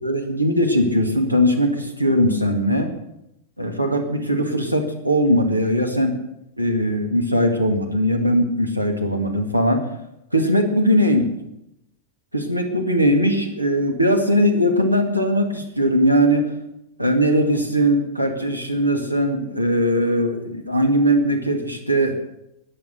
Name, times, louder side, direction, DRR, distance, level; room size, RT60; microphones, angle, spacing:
voice 1, 0.0-2.9 3.6-6.2 6.6-9.8 10.3-11.3 12.3-16.5 17.0-22.1, equal, 90° right, 4 dB, 1.9 m, -20 dB
20.5 x 8.3 x 6.8 m, 0.84 s
figure-of-eight pair, 90°, 0 cm